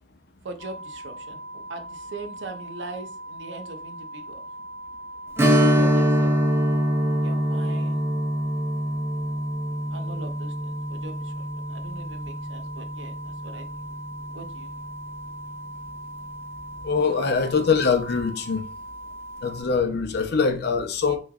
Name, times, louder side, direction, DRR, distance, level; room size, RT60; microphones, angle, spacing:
voice 1, 0.4-4.4 5.4-6.4 7.2-8.1 9.9-13.2 13.4-13.6 14.3-14.7, right 3 dB, 75° right, 0.6 m, -41 dB
sound 1, 0.6-19.6, right 1 dB, 20° left, 1.0 m, -40 dB
Strum, 5.4-14.6 14.9-15.0 17.5-17.7 18.2-18.3, equal, 15° right, 0.4 m, -25 dB
voice 2, 16.8-18.6 19.4-21.2, left 5 dB, 60° left, 0.5 m, -23 dB
3.5 x 3.1 x 2.3 m
head